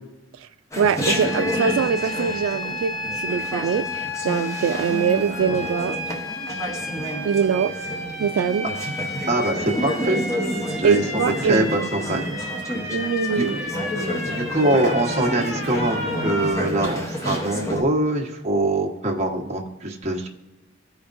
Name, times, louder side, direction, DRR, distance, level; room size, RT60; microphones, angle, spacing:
Chatter, 0.7-17.8, equal, 15° left, 0.9 m, -30 dB
voice 1, 0.8-6.0 7.2-7.7 8.2-8.7 10.8-11.9 12.9-13.6, right 7 dB, 85° right, 10 dB, 0.3 m, -23 dB
sound 1, 1.0-16.5, left 1 dB, 65° left, 3.0 m, -32 dB
voice 2, 9.3-10.2 10.8-12.3 13.0-13.1 13.4-13.5 14.3-20.3, right 1 dB, 35° right, 0 dB, 1.2 m, -23 dB
14.5 x 5.1 x 2.6 m, 0.98 s
head